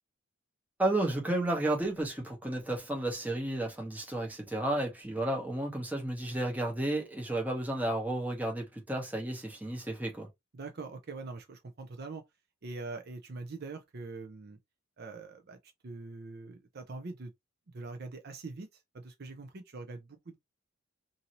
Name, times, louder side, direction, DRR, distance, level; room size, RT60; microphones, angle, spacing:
voice 1, 0.8-10.3, right 1 dB, 10° right, 0.9 m, -32 dB
voice 2, 10.5-12.2 12.6-14.6 15.0-15.6 15.8-17.3 17.7-20.4, right 3 dB, 50° right, 0.5 m, -43 dB
2.7 x 2.6 x 2.9 m
head